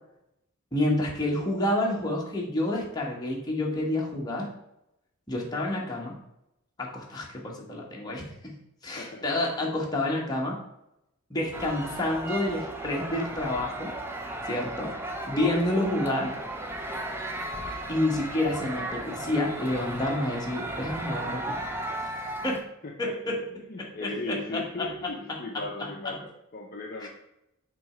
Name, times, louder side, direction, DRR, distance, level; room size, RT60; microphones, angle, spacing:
voice 1, 0.7-4.5 5.3-6.2 6.8-8.6 8.8-10.6 11.3-13.9 14.5-15.0 15.3-16.3 17.9-21.5 22.0-22.1 22.4-22.7 23.0-23.4 23.8-24.9 25.3-26.1 27.0-27.1, left 1 dB, 20° left, -2 dB, 1.1 m, -29 dB
sound 1, 11.5-22.6, right 1 dB, 10° right, 0.5 m, -35 dB
voice 2, 22.8-27.1, left 2 dB, 40° left, 0 dB, 0.6 m, -38 dB
6.0 x 3.2 x 4.9 m, 0.84 s
head